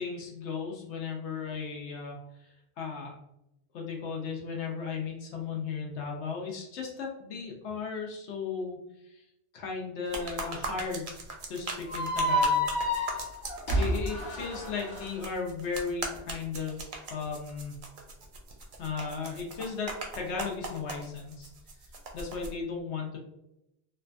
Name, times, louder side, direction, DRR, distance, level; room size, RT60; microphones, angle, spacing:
voice 1, 0.0-3.2 3.7-8.8 9.0-9.2 9.5-11.1 11.5-12.7 13.7-17.8 18.8-21.5 22.1-23.2, left 5 dB, 80° left, 0 dB, 0.9 m, -36 dB
sound 1, 10.1-22.5, right 3 dB, 60° right, 0.6 m, -40 dB
sound 2, 11.9-15.1, left 1 dB, 55° left, 0.9 m, -29 dB
3.1 x 2.2 x 2.5 m, 0.85 s
omnidirectional pair, 1.1 m